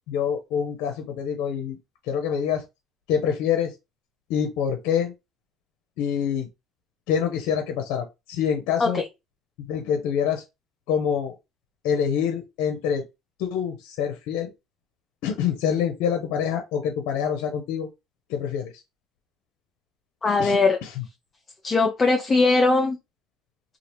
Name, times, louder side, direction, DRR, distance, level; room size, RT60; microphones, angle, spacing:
voice 1, 0.1-1.8 2.0-2.6 3.1-3.7 4.3-5.1 6.0-6.5 7.1-9.0 9.7-10.4 10.9-11.4 11.8-13.0 13.4-14.5 15.2-17.9 18.3-18.8 20.4-21.0, left 8 dB, 80° left, 0.6 m, -26 dB
voice 2, 20.2-20.8 21.6-23.0, left 3 dB, 25° left, 0.5 m, -20 dB
2.8 x 2.4 x 3.0 m
supercardioid pair, 100°, 0 cm